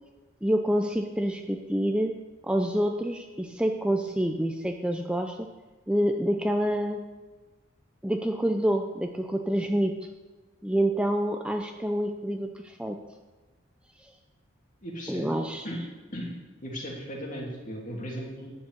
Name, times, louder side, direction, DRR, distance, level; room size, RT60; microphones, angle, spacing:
voice 1, 0.4-2.2 2.4-5.5 5.9-7.0 8.0-10.0 10.6-13.0 14.0-14.1 15.1-15.6, equal, 5° right, 4 dB, 0.5 m, -27 dB
voice 2, 14.8-15.3 15.6-15.8 16.1-16.3 16.6-18.5, equal, 40° left, -2 dB, 3.0 m, -36 dB
11.0 x 7.8 x 8.2 m, 1.2 s
head